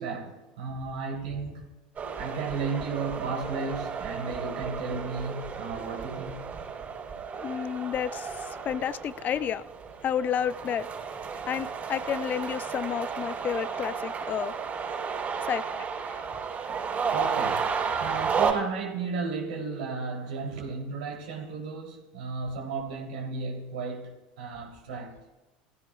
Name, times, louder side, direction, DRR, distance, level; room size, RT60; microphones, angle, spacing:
voice 1, 0.0-1.7 2.2-6.5 16.7-17.7 18.0-25.2, right 4 dB, 75° right, 3.5 m, -34 dB
sound 1, 2.0-18.5, right 6 dB, 35° right, 5.3 m, -33 dB
voice 2, 7.4-9.6 10.0-10.9 11.5-14.5 15.4-16.2, left 9 dB, 40° left, 0.7 m, -31 dB
19.0 x 15.0 x 2.5 m
hypercardioid pair, 85°, 5 cm